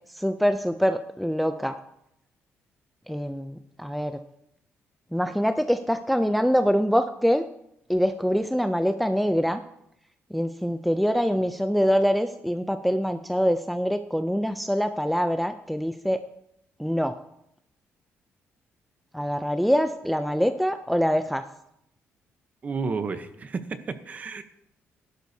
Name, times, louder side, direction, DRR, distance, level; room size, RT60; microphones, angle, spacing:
voice 1, 0.2-1.7 3.1-4.1 5.1-7.5 7.9-9.6 10.3-16.2 16.8-17.1 19.1-21.4, equal, ahead, 8 dB, 0.4 m, -24 dB
voice 2, 22.6-23.6 23.9-24.4, right 4 dB, 30° right, 10 dB, 0.8 m, -31 dB
16.0 x 11.5 x 2.7 m, 0.79 s
cardioid pair, 155°, 5 cm